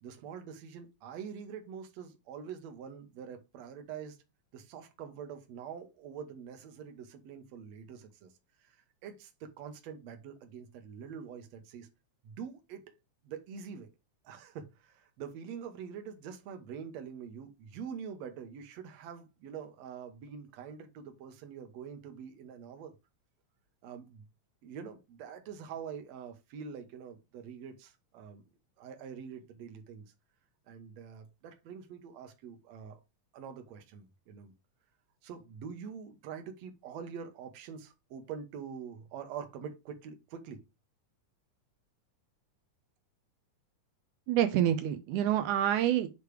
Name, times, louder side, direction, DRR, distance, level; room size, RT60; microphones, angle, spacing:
voice 1, 0.0-4.2 4.5-8.3 8.6-8.8 9.0-11.9 12.2-12.8 13.2-13.9 14.2-23.0 23.8-24.3 24.6-28.4 28.8-30.1 30.7-33.0 33.3-34.5 35.2-40.6, right 7 dB, 65° right, 2.2 m, -45 dB
voice 2, 44.3-46.1, right 11 dB, 85° right, 2.2 m, -27 dB
8.5 x 3.3 x 4.7 m
omnidirectional pair, 3.5 m